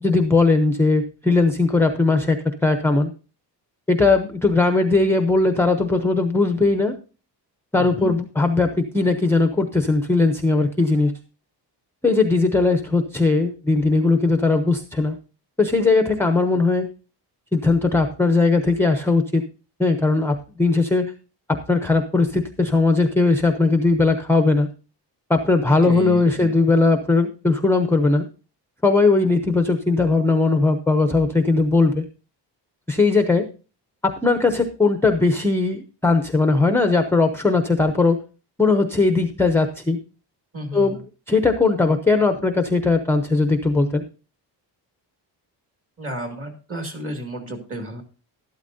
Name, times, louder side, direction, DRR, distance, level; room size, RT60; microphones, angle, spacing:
voice 1, 0.0-3.1 3.9-6.9 7.7-11.1 12.0-15.1 15.6-16.9 17.5-19.4 19.8-21.1 21.5-24.7 25.3-28.2 28.8-32.0 32.9-33.5 34.0-38.2 38.6-40.0 40.7-41.0 41.3-44.0, left 3 dB, 5° left, 7 dB, 0.6 m, -19 dB
voice 2, 7.8-8.2 25.6-26.5 40.5-41.0 46.0-48.0, equal, 30° right, 4 dB, 2.3 m, -32 dB
12.5 x 12.0 x 2.6 m, 0.34 s
wide cardioid pair, 180°, 43 cm